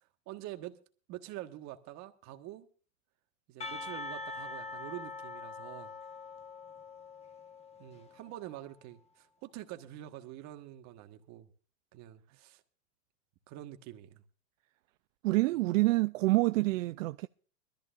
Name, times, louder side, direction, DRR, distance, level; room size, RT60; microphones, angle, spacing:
voice 1, 0.3-0.8 1.1-2.7 3.5-5.9 7.8-11.5 11.9-12.6 13.5-14.2, right 14 dB, 45° right, 1.5 m, -46 dB
Percussion, 3.6-8.5, left 3 dB, 15° left, 1.2 m, -44 dB
voice 2, 15.2-17.3, right 20 dB, 75° right, 0.5 m, -27 dB
22.0 x 13.5 x 2.5 m
supercardioid pair, 125°, 39 cm